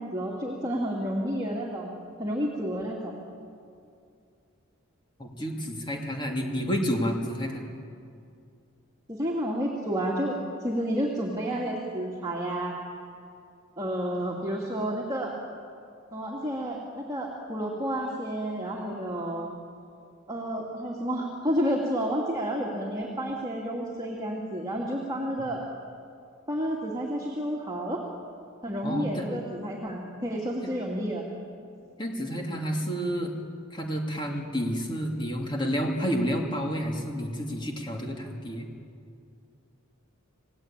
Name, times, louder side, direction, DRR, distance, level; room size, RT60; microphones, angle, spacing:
voice 1, 0.0-1.9 2.2-3.2 9.1-12.8 13.8-15.4 16.1-19.5 20.3-25.6 26.5-28.0 28.6-31.3, equal, 20° right, -2 dB, 2.5 m, -30 dB
voice 2, 5.2-7.7 28.8-29.3 32.0-33.3 33.7-38.7, equal, 20° left, 1 dB, 2.6 m, -30 dB
28.0 x 17.5 x 8.9 m, 2.4 s
head